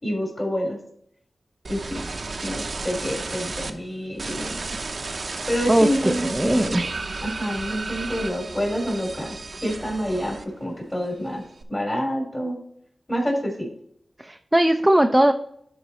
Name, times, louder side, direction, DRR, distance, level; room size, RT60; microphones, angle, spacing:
voice 1, 0.0-0.8 1.7-2.0 2.4-4.7 5.5-6.8 7.2-9.3 9.6-11.4 11.7-12.6 13.1-13.7, equal, 25° left, -1 dB, 3.5 m, -27 dB
sound 1, 1.6-3.7 4.2-10.7 11.0-11.6, right 3 dB, 60° right, 0.8 m, -33 dB
voice 2, 5.7-6.8 14.2-15.3, right 1 dB, 15° right, 5 dB, 0.6 m, -19 dB
11.0 x 4.0 x 4.2 m, 0.69 s
cardioid pair, 50°, 0 cm